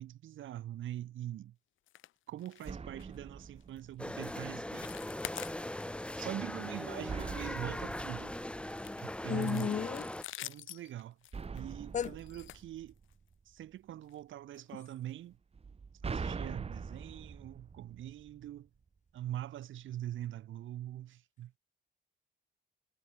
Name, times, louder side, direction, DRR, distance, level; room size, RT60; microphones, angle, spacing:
voice 1, 0.0-1.5 2.3-4.9 6.1-8.4 9.0-9.8 10.4-11.2 11.5-12.9 13.5-15.4 16.0-18.7 19.1-21.6, right 12 dB, 75° right, 3.5 m, -43 dB
sound 1, 1.9-2.1 2.4-2.7 3.0-3.2 3.6-3.8 4.2-4.4 4.7-6.1 6.4-6.6 7.0-8.1 8.7-13.3 14.0-14.2 14.5-14.6 15.1-15.2, left 14 dB, 80° left, 1.4 m, -48 dB
sound 2, 2.6-4.5 7.1-9.5 11.3-13.6 15.5-18.6, right 5 dB, 30° right, 1.3 m, -43 dB
sound 3, 4.0-10.2, left 1 dB, 5° left, 1.3 m, -40 dB
voice 2, 9.3-10.0 11.9-12.1, left 8 dB, 40° left, 0.5 m, -33 dB
cardioid pair, 90°, 20 cm